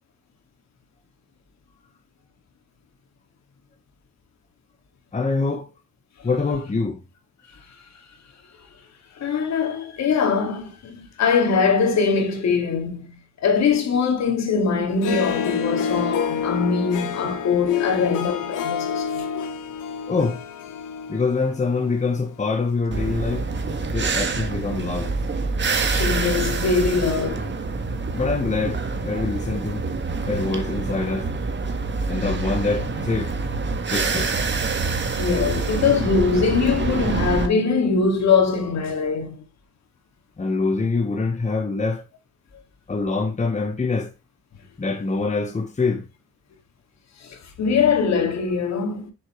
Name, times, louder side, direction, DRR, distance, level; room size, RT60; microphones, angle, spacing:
voice 1, 5.1-5.7 6.2-7.0 20.1-20.4 21.1-23.5 23.9-25.1 28.1-29.9 30.2-31.3 32.1-33.3 33.9-34.4 40.4-42.0 42.9-44.1 44.8-46.1, left 3 dB, 25° left, 1.3 m, -25 dB
voice 2, 9.2-13.1 13.4-19.3 25.9-27.5 35.2-39.4 47.2-49.1, left 5 dB, 60° left, 2.4 m, -22 dB
Harp, 14.9-22.3, left 6 dB, 80° left, 1.4 m, -29 dB
sound 1, 22.9-37.5, right 4 dB, 40° right, 1.6 m, -26 dB
7.5 x 6.3 x 3.2 m
cardioid pair, 90°, 30 cm